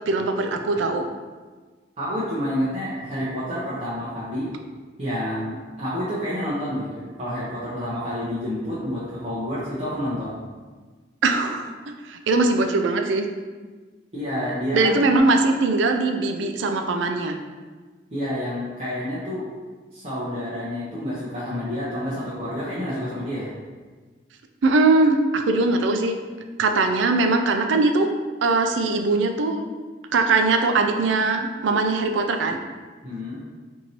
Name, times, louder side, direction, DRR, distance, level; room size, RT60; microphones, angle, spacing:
voice 1, 0.1-1.0 11.2-11.7 12.1-13.3 14.7-17.4 24.6-26.2 26.6-28.1 28.4-29.6 30.1-32.6, right 3 dB, 80° right, 6 dB, 0.4 m, -21 dB
voice 2, 2.0-4.5 5.0-10.4 14.1-15.0 18.1-19.5 19.9-23.5 33.0-33.4, equal, 35° right, -10 dB, 0.7 m, -29 dB
4.5 x 2.7 x 2.8 m, 1.4 s
head